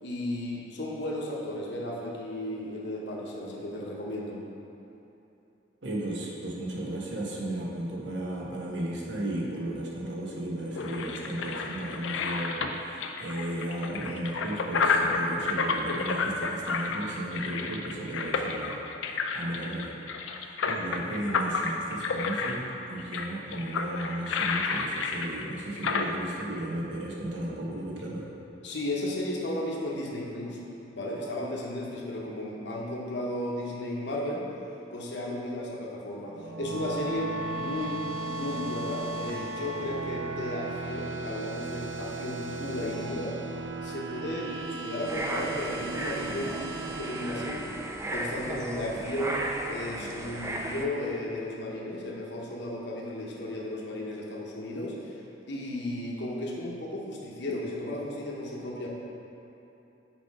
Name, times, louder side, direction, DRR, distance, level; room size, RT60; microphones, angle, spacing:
voice 1, 0.0-4.4 28.6-30.6 30.9-34.4 34.9-43.4 43.8-46.7 47.0-47.8 48.1-58.9, left 1 dB, 65° left, -3 dB, 1.0 m, -34 dB
voice 2, 5.8-19.9 20.3-28.3, right 1 dB, 70° right, -3 dB, 1.1 m, -35 dB
sound 1, 10.3-26.1, left 4 dB, 85° left, 0.5 m, -31 dB
sound 2, 36.3-48.6, right 2 dB, 90° right, 0.6 m, -36 dB
sound 3, 45.0-50.8, right 1 dB, 15° right, 0.3 m, -35 dB
6.1 x 4.7 x 4.7 m, 2.9 s
head